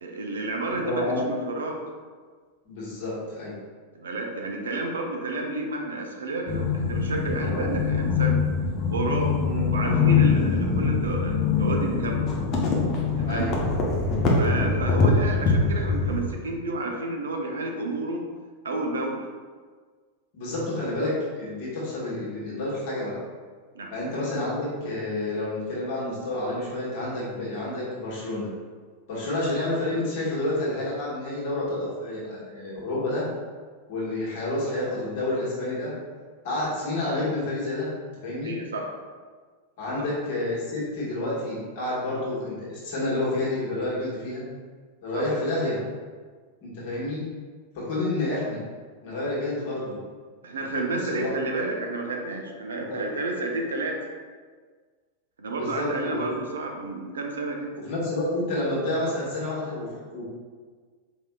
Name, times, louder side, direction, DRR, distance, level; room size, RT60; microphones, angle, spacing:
voice 1, 0.0-1.8 3.9-8.4 8.8-9.3 9.7-12.3 13.2-13.5 14.3-18.2 18.6-19.2 23.7-23.9 38.4-38.9 40.0-40.1 45.1-45.2 50.4-54.0 55.4-57.7, right 2 dB, 70° right, 1 dB, 0.6 m, -30 dB
voice 2, 0.7-1.3 2.6-3.5 9.4-9.7 13.2-13.5 20.3-23.2 23.9-28.5 29.1-33.3 33.9-35.9 36.4-37.9 38.2-38.5 39.8-44.4 45.0-45.8 46.6-47.3 47.7-48.6 49.0-50.0 50.7-51.3 52.9-53.0 55.5-56.3 57.8-60.2, left 1 dB, 50° left, -7 dB, 1.5 m, -29 dB
sound 1, 6.5-16.2, left 4 dB, 35° left, 0.7 m, -23 dB
4.4 x 3.3 x 2.3 m, 1.5 s
figure-of-eight pair, 90°, 0 cm